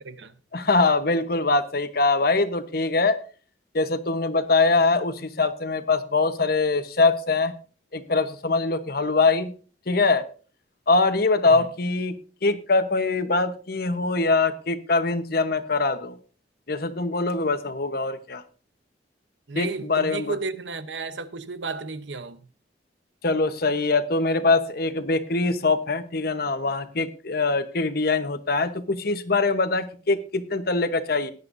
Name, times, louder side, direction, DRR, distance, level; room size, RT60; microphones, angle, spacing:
voice 1, 0.0-0.4 11.5-11.7 19.5-22.5, right 4 dB, 80° right, 0.9 m, -33 dB
voice 2, 0.5-3.2 3.7-7.5 7.9-9.5 9.9-10.3 10.9-16.2 16.7-18.4 19.5-20.3 23.2-31.3, left 3 dB, 55° left, 1.1 m, -23 dB
18.0 x 10.5 x 2.7 m
head